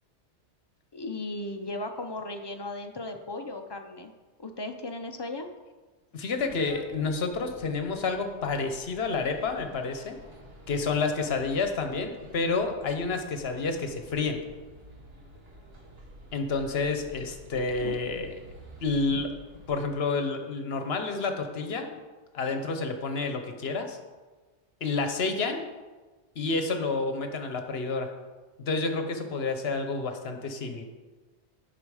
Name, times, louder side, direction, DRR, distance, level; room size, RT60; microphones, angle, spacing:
voice 1, 0.9-4.1 4.4-5.5 17.8-18.0, left 2 dB, 35° left, 5 dB, 0.4 m, -36 dB
voice 2, 6.1-10.2 10.7-14.4 16.3-18.3 18.8-19.3 19.7-21.9 22.3-24.0 24.8-25.6 26.4-28.1 28.6-30.8, left 4 dB, 65° left, 6 dB, 1.1 m, -29 dB
sound 1, 6.4-19.7, equal, 60° right, 1.6 m, -50 dB
8.8 x 5.8 x 4.8 m, 1.3 s
omnidirectional pair, 1.2 m